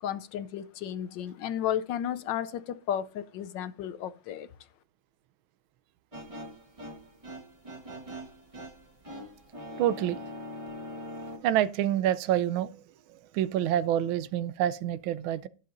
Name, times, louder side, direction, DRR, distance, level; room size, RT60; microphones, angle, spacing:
voice 1, 0.0-4.5, left 10 dB, 75° left, 1.2 m, -33 dB
sound 1, 6.1-11.4, equal, 20° right, 1.4 m, -42 dB
voice 2, 9.8-10.2 11.4-12.7 13.3-15.5, right 11 dB, 80° right, 1.4 m, -27 dB
19.0 x 6.7 x 2.6 m
omnidirectional pair, 2.2 m